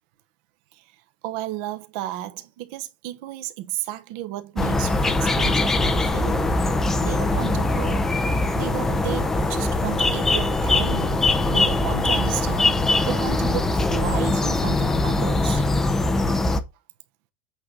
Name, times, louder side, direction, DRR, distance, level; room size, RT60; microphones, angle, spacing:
voice 1, 1.2-6.5 7.0-8.1 8.5-15.8, right 15 dB, 45° right, 1.0 m, -33 dB
sound 1, 4.6-16.6, left 2 dB, 5° left, 0.6 m, -22 dB
8.6 x 3.9 x 6.3 m
supercardioid pair, 180°, 6 cm